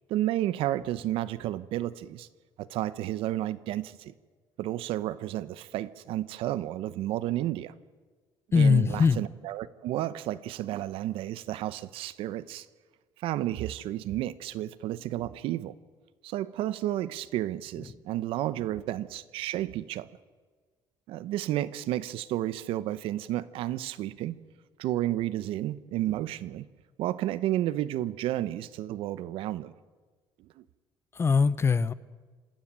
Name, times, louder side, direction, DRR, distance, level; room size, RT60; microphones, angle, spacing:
voice 1, 0.1-2.3 2.6-4.1 4.6-7.7 8.5-12.7 13.2-15.7 16.2-20.1 21.1-24.4 24.8-26.7 27.0-29.7 30.6-30.7, right 14 dB, 75° right, 0.9 m, -31 dB
voice 2, 8.5-9.2 31.1-31.9, left 5 dB, 25° left, 0.6 m, -21 dB
28.0 x 13.0 x 9.0 m
cardioid pair, 120°, 9 cm